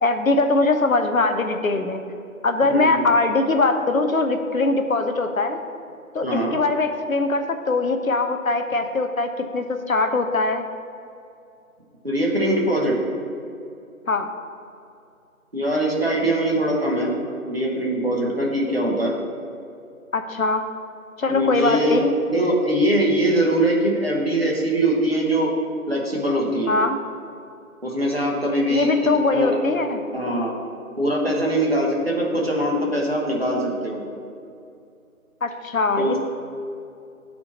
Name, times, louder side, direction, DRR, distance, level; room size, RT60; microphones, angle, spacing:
voice 1, 0.0-2.0 2.4-5.6 6.1-10.7 14.1-14.3 20.1-20.6 21.2-22.1 26.7-27.0 28.7-30.0 35.4-36.2, left 3 dB, 65° left, 6 dB, 0.6 m, -21 dB
voice 2, 6.2-6.6 12.0-13.0 15.5-17.1 17.5-19.1 21.3-22.0 22.3-25.5 25.9-26.7 27.8-29.6 30.1-30.6 31.0-34.0 36.0-36.2, right 1 dB, 40° right, -2 dB, 1.0 m, -22 dB
12.5 x 4.3 x 2.8 m, 2.6 s
figure-of-eight pair, 170°, 44 cm